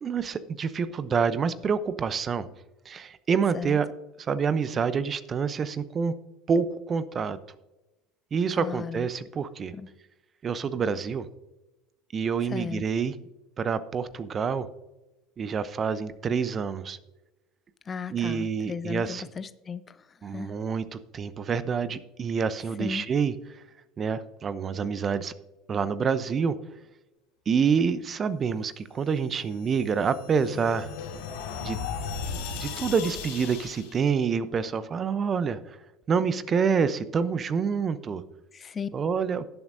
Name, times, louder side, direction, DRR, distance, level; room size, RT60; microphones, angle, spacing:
voice 1, 0.0-2.4 2.9-3.9 4.3-6.2 6.5-7.4 8.3-9.7 10.4-11.3 12.1-13.1 13.6-14.7 15.4-17.0 18.1-19.2 20.2-23.3 24.0-25.3 25.7-26.5 27.5-30.9 31.6-31.8 32.5-35.8 36.1-38.2 38.9-39.4, right 6 dB, 35° right, 15 dB, 0.8 m, -27 dB
voice 2, 8.6-9.1 9.7-9.9 12.5-12.8 17.9-20.0 20.3-20.5 22.8-23.1 38.5-38.9, left 6 dB, 30° left, 14 dB, 0.7 m, -35 dB
sound 1, 29.5-34.0, left 6 dB, 70° left, 2.2 m, -36 dB
18.0 x 7.3 x 2.7 m, 1.0 s
hypercardioid pair, 70°, 0 cm